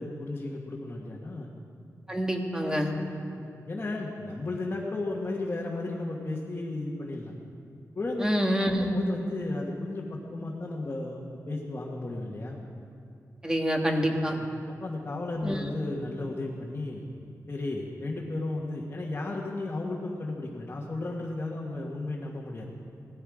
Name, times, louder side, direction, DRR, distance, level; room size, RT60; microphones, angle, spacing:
voice 1, 0.0-1.5 2.6-3.1 3.3-7.3 7.9-8.3 8.9-12.6 14.3-14.5 14.8-17.0 17.5-22.6, left 2 dB, 35° left, -4 dB, 1.6 m, -34 dB
voice 2, 2.1-2.9 8.2-8.9 13.4-14.4 15.4-15.8, equal, 10° right, 1 dB, 1.7 m, -27 dB
18.5 x 14.5 x 5.0 m, 2.4 s
wide cardioid pair, 130°, 6 cm